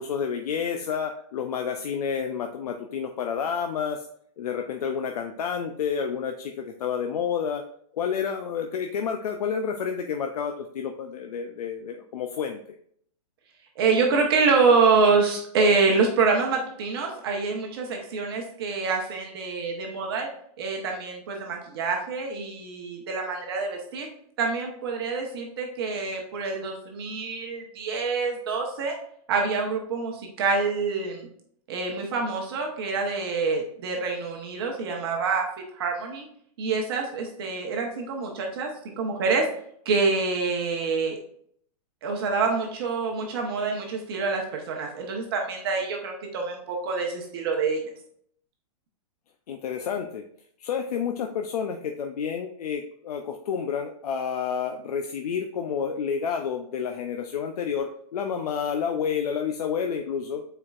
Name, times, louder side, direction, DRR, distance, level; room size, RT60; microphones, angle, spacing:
voice 1, 0.0-4.1 4.4-7.7 7.9-12.6 49.5-50.2 50.6-60.4, left 7 dB, 85° left, 4 dB, 0.6 m, -29 dB
voice 2, 13.8-20.3 20.6-24.1 24.4-28.9 29.3-31.3 31.7-35.5 35.7-36.3 36.6-39.5 39.8-41.2 42.0-47.8, right 4 dB, 40° right, 1 dB, 1.0 m, -26 dB
8.6 x 4.5 x 2.4 m, 0.66 s
supercardioid pair, 175°, 19 cm